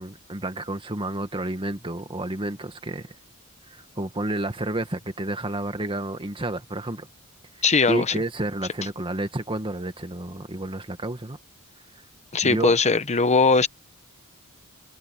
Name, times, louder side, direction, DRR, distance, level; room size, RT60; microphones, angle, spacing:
voice 1, 0.0-3.1 3.7-7.1 7.9-11.4 12.4-12.7, right 1 dB, 25° right, 1.7 m, -30 dB
voice 2, 7.6-8.1 12.3-13.7, left 4 dB, 30° left, 1.0 m, -20 dB
head